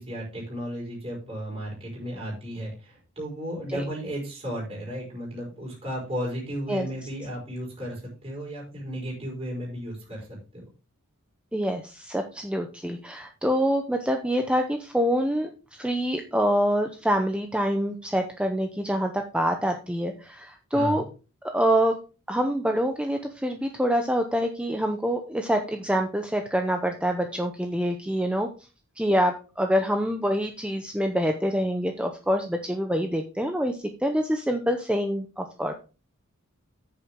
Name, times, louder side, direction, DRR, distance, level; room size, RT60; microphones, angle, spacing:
voice 1, 0.0-10.3 10.5-10.6 20.7-21.0, equal, 25° right, -4 dB, 4.7 m, -34 dB
voice 2, 11.5-21.0 21.5-22.0 22.3-28.5 29.0-35.7, equal, 5° right, 5 dB, 0.6 m, -26 dB
9.0 x 7.0 x 3.6 m, 0.34 s
head